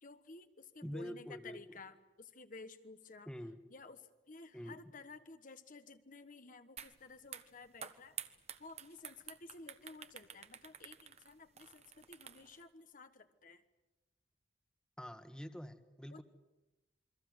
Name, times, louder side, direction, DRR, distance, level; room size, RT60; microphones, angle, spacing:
voice 1, 0.0-3.3 3.7-8.3 8.6-13.6 16.1-16.2, left 3 dB, 50° left, 9 dB, 1.2 m, -54 dB
voice 2, 0.8-1.8 3.3-3.6 4.5-4.7 15.0-16.2, equal, 5° left, 9 dB, 1.5 m, -46 dB
sound 1, 6.8-6.9 7.2-12.6, right 8 dB, 35° right, 1.3 m, -50 dB
28.0 x 23.5 x 7.9 m, 1.0 s
head